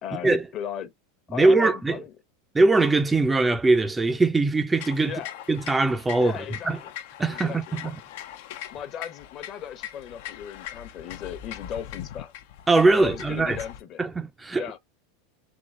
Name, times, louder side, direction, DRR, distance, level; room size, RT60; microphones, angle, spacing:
voice 1, 0.0-0.9 1.3-2.1 5.0-5.4 6.2-6.9 7.3-7.9 8.7-12.3 12.9-14.1 14.5-14.8, left 9 dB, 45° left, 0.9 m, -36 dB
voice 2, 1.3-2.0 2.5-5.2 5.5-6.3 6.7-6.8 7.2-7.9 12.7-13.6 14.0-14.6, right 3 dB, 15° right, 0.5 m, -21 dB
sound 1, 4.8-13.8, left 11 dB, 70° left, 0.6 m, -41 dB
3.7 x 3.0 x 3.6 m
hypercardioid pair, 105°, 0 cm